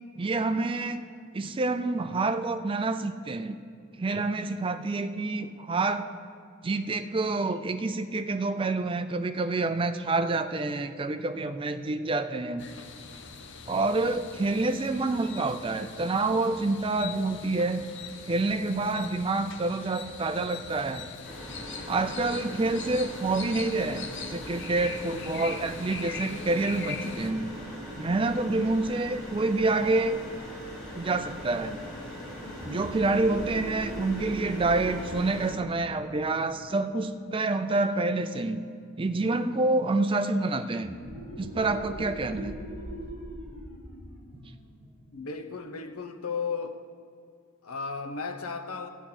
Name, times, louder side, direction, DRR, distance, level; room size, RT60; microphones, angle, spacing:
voice 1, 0.2-1.0 1.3-3.6 4.0-6.1 6.6-12.7 13.7-17.8 18.3-21.1 21.9-27.5 28.0-30.2 31.0-31.8 32.6-38.7 39.0-40.9 41.4-42.6, right 2 dB, 25° right, 10 dB, 0.4 m, -27 dB
sound 1, 12.6-27.3, left 5 dB, 55° left, 0.7 m, -42 dB
sound 2, 21.2-35.5, equal, 5° left, 3.6 m, -41 dB
sound 3, 32.3-37.7 40.7-46.0, right 1 dB, 40° left, 3.1 m, -42 dB
voice 2, 45.1-46.8 47.6-48.9, left 5 dB, 90° left, 6 dB, 0.9 m, -34 dB
13.5 x 10.0 x 4.4 m, 2.3 s
head